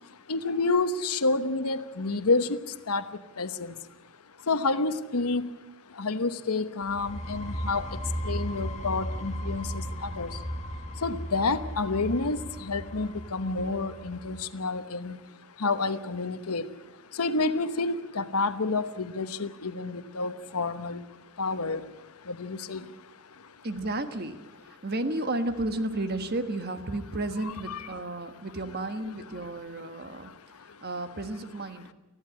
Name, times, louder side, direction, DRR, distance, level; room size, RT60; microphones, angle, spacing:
voice 1, 0.3-2.5 2.9-3.0 3.4-3.7 4.5-5.5 6.0-7.8 8.3-9.7 10.0-10.3 11.0-15.2 15.6-16.6 17.2-21.0 21.4-21.8 22.3-22.8 27.7-27.9, left 3 dB, 85° left, 11 dB, 1.1 m, -29 dB
sound 1, 6.8-14.4, equal, 30° left, 1.9 m, -36 dB
voice 2, 23.6-24.4 24.7-30.3 30.8-31.9, right 2 dB, 45° right, 9 dB, 1.4 m, -32 dB
20.0 x 14.5 x 9.9 m, 1.1 s
head